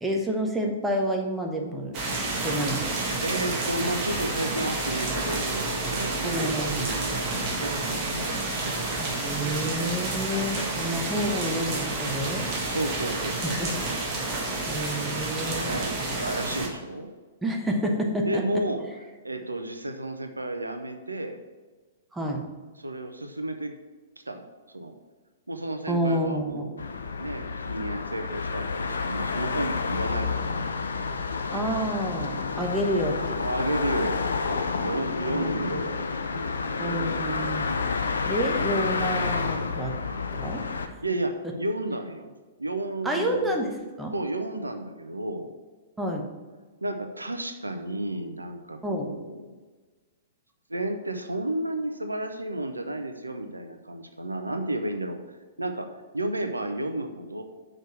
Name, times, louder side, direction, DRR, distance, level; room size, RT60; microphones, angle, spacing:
voice 1, 0.0-2.9 6.2-6.9 9.0-12.5 13.5-13.9 14.7-15.7 17.4-18.4 22.1-22.4 25.9-26.6 31.5-33.4 35.3-35.8 36.8-37.8 38.3-40.0 40.3-40.9 43.0-44.1 46.0-46.3 48.8-49.1, equal, 5° right, 1 dB, 1.1 m, -29 dB
sound 1, 1.9-16.7, right 2 dB, 30° right, 1.8 m, -30 dB
voice 2, 3.2-8.3 8.5-9.0 12.6-13.6 13.9-14.0 15.4-17.1 18.2-18.8 19.2-21.4 22.8-23.8 24.3-24.4 24.7-24.9 25.5-30.5 32.8-37.3 41.0-42.3 42.6-43.6 44.1-45.5 46.8-49.6 50.7-55.2 55.6-55.9 56.1-57.4, right 1 dB, 80° right, 6 dB, 0.7 m, -32 dB
sound 2, 26.8-40.9, left 4 dB, 70° left, 0.6 m, -29 dB
6.5 x 5.0 x 6.4 m, 1.3 s
figure-of-eight pair, 110°, 0 cm